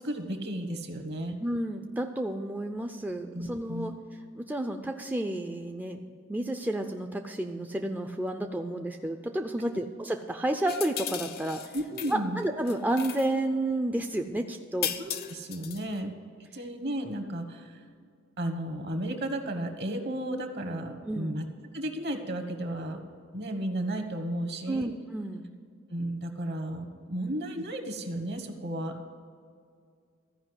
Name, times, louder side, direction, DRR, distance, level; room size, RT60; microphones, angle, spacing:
voice 1, 0.0-1.4 3.3-3.9 11.7-12.4 15.0-16.1 16.5-17.7 18.4-21.4 21.7-23.0 23.3-24.9 25.9-28.9, right 1 dB, 55° right, 6 dB, 1.3 m, -33 dB
voice 2, 1.4-3.9 4.3-6.0 6.3-11.8 12.1-14.9 15.9-16.0 21.1-21.4 24.7-25.5 27.2-27.3, right 1 dB, 10° right, 4 dB, 0.4 m, -31 dB
sound 1, 10.7-12.2 12.4-13.3 14.8-15.9, left 10 dB, 50° left, 0.6 m, -36 dB
14.0 x 5.2 x 8.0 m, 2.2 s
head